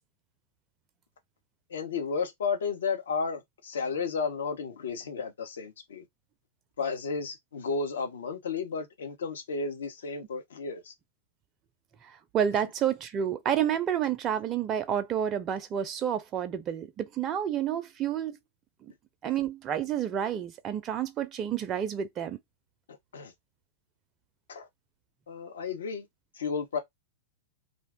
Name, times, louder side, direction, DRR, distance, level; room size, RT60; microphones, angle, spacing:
voice 1, 1.7-6.0 6.8-10.9 22.9-23.3 24.5-24.7 25.3-26.1 26.4-26.8, left 5 dB, 65° left, 0.8 m, -33 dB
voice 2, 12.0-18.4 19.2-22.4, right 9 dB, 30° right, 0.4 m, -29 dB
2.5 x 2.2 x 3.5 m
figure-of-eight pair, 95°, 0 cm